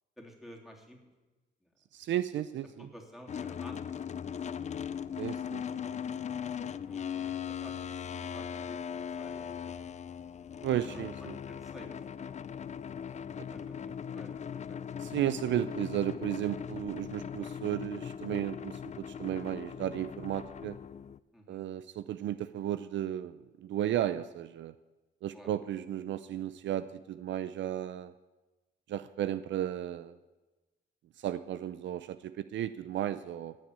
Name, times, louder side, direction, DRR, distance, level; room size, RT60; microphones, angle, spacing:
voice 1, 0.2-1.0 2.8-3.8 5.9-6.1 6.9-7.7 8.3-9.9 10.9-11.0 11.5-12.4 13.3-14.8 17.4-17.5 21.3-21.6 25.3-25.5, equal, ahead, 1 dB, 3.2 m, -52 dB
voice 2, 1.9-2.9 5.2-5.8 10.6-11.4 15.0-20.8 21.5-24.7 25.2-28.1 28.9-30.1 31.2-33.6, right 11 dB, 70° right, 14 dB, 0.5 m, -34 dB
sound 1, 3.3-21.2, left 8 dB, 35° left, 0.5 m, -39 dB
17.5 x 6.4 x 8.6 m, 1.2 s
cardioid pair, 90°, 20 cm